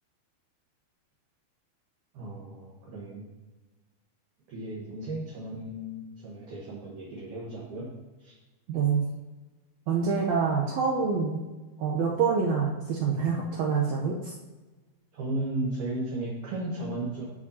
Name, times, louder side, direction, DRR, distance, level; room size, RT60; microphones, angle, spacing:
voice 1, 2.1-3.3 4.5-7.9 8.2-8.4 15.1-17.3, right 1 dB, 65° right, -5 dB, 2.5 m, -35 dB
voice 2, 8.7-9.0 9.9-11.4 11.8-14.3, right 5 dB, 85° right, -2 dB, 1.6 m, -26 dB
14.0 x 5.1 x 2.8 m, 1.2 s
omnidirectional pair, 4.3 m